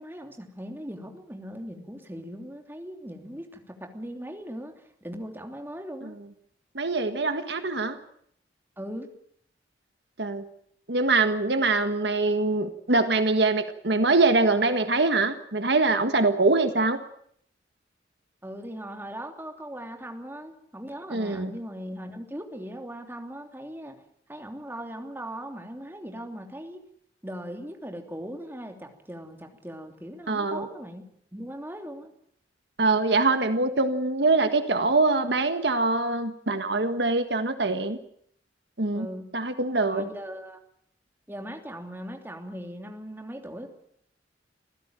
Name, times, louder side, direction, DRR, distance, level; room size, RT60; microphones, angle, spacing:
voice 1, 0.0-6.2 8.8-9.1 18.4-24.0 24.3-26.8 27.2-31.0 31.3-32.1 38.9-39.3 39.9-40.6 41.3-43.7, equal, 10° right, 4 dB, 3.0 m, -39 dB
voice 2, 6.8-8.0 10.2-10.4 10.9-17.0 21.1-21.5 30.3-30.7 32.8-38.0 38.8-39.1 39.3-40.1, right 3 dB, 65° right, 8 dB, 1.7 m, -23 dB
26.5 x 15.5 x 8.9 m, 0.68 s
head